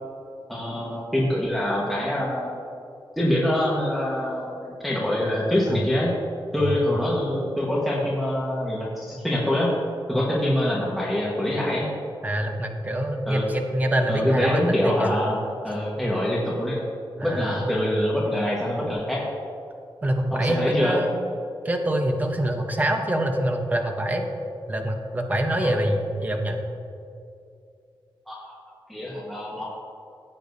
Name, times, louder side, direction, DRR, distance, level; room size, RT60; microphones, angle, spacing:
voice 1, 0.5-2.5 3.2-6.1 6.5-9.7 10.1-11.9 13.3-13.4 14.1-15.4 15.6-16.8 17.2-19.2 20.3-21.0 25.6-25.7 28.3-29.6, left 1 dB, ahead, -6 dB, 1.4 m, -25 dB
voice 2, 12.2-15.1 17.2-17.6 20.0-21.1 21.6-24.2 24.7-26.6, right 1 dB, 20° right, 3 dB, 0.9 m, -25 dB
15.0 x 8.6 x 2.7 m, 2.5 s
wide cardioid pair, 155°, 9 cm